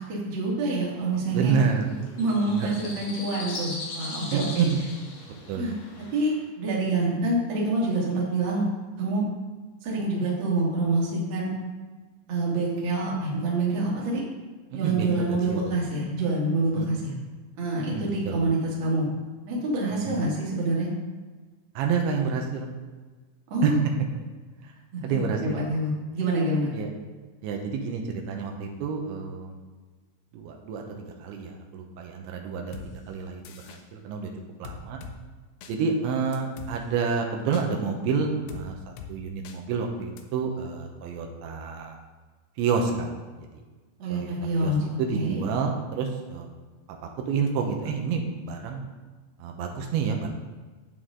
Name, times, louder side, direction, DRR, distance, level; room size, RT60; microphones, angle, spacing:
voice 1, 0.0-1.6 2.2-4.7 5.5-5.7 6.1-8.7 9.0-9.2 9.8-11.5 12.3-14.2 14.7-17.1 17.6-19.1 19.5-20.9 23.5-23.8 24.9-26.8 44.0-44.8 45.1-45.4, right 2 dB, 35° right, -5 dB, 2.1 m, -26 dB
sound 1, 1.2-6.4, left 3 dB, 55° left, 3.0 m, -40 dB
voice 2, 1.3-1.9 2.4-2.9 4.3-4.8 5.5-5.7 14.7-15.8 16.7-16.9 17.8-18.4 19.9-20.2 21.8-22.7 23.6-23.7 24.6-24.7 25.0-25.6 26.7-26.9 27.4-29.6 30.3-30.8 31.2-32.8 33.1-34.3 34.6-35.0 35.7-38.8 39.1-42.0 42.6-43.1 43.4-43.6 44.1-44.3 44.6-46.5 47.3-48.8 49.4-50.3, right 5 dB, 80° right, 2 dB, 3.3 m, -29 dB
sound 2, 32.7-32.9 33.4-33.8 34.6-35.1 35.6-35.7 36.3-36.7 37.5-37.7 38.5-38.6 39.0-39.1 39.4-39.6 40.2-40.3, left 9 dB, 90° left, 2.0 m, -41 dB
9.6 x 8.5 x 3.8 m, 1.3 s
omnidirectional pair, 5.2 m